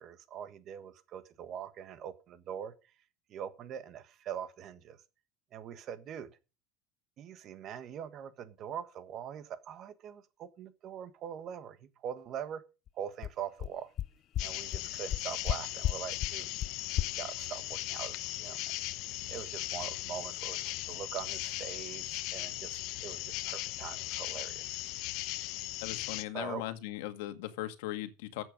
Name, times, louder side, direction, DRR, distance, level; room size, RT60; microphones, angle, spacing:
voice 1, 0.0-2.7 3.3-5.0 5.5-6.3 7.2-12.6 12.9-13.9 14.4-16.5 16.9-18.6 19.3-24.8 26.3-26.6, right 9 dB, 40° right, 1.4 m, -43 dB
sound 1, 12.9-13.0 13.2-13.3 13.6-13.7 14.0-14.1 14.3-14.4 14.7-14.8 15.1-15.5 15.8-15.9 16.2-16.3 16.6-16.7 17.0-17.1, left 12 dB, 35° left, 0.5 m, -31 dB
sound 2, 14.4-26.2, left 18 dB, 55° left, 0.9 m, -38 dB
voice 2, 25.8-28.4, left 15 dB, 80° left, 1.8 m, -38 dB
13.5 x 8.0 x 5.3 m
cardioid pair, 150°, 0 cm